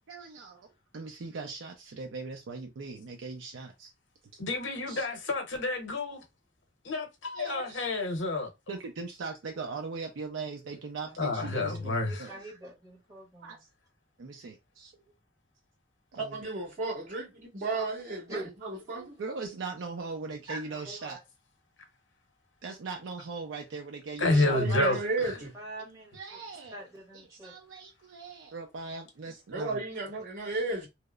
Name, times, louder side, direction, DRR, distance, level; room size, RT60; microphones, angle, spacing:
voice 1, 0.1-0.7 0.9-3.9 4.9-5.1 7.3-7.9 8.7-12.3 13.4-13.6 14.2-14.9 16.1-16.5 17.5-17.9 18.9-21.2 22.6-24.6 25.2-25.5 26.1-26.8 27.1-29.8, right 4 dB, 80° right, 0.4 m, -40 dB
voice 2, 4.4-6.2 6.8-8.5 11.2-12.3 24.2-25.0, left 2 dB, 75° left, 0.7 m, -29 dB
voice 3, 11.0-13.6 18.3-18.5 20.5-21.2 24.3-24.4 24.7-25.1 25.3-26.4 26.7-27.5, right 1 dB, 20° right, 1.3 m, -43 dB
voice 4, 16.3-19.2 24.4-25.5 29.5-30.9, right 3 dB, 45° right, 1.5 m, -33 dB
2.8 x 2.0 x 2.3 m
head